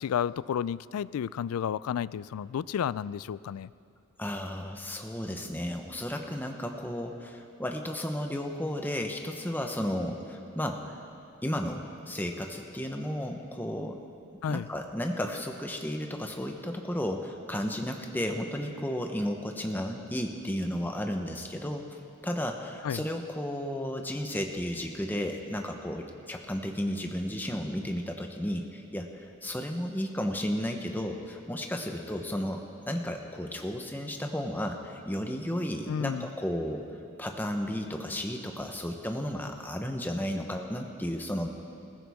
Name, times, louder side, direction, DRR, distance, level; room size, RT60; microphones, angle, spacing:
voice 1, 0.0-3.7 14.4-14.7 22.8-23.0 35.9-36.3, left 8 dB, 90° left, 19 dB, 0.3 m, -31 dB
voice 2, 4.2-11.0 11.4-14.0 14.5-21.8 22.2-36.8 37.2-41.5, equal, 10° left, 3 dB, 0.9 m, -33 dB
21.0 x 15.5 x 3.6 m, 2.7 s
head